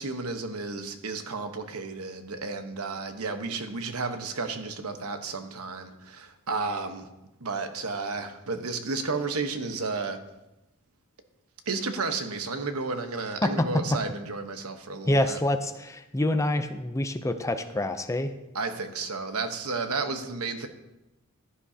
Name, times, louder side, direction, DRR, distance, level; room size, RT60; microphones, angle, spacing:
voice 1, 0.0-7.1 7.4-10.2 11.7-15.4 18.5-20.7, right 4 dB, 80° right, 7 dB, 1.1 m, -32 dB
voice 2, 15.1-18.3, left 1 dB, 15° left, 9 dB, 0.5 m, -26 dB
15.0 x 11.5 x 2.8 m, 0.96 s
head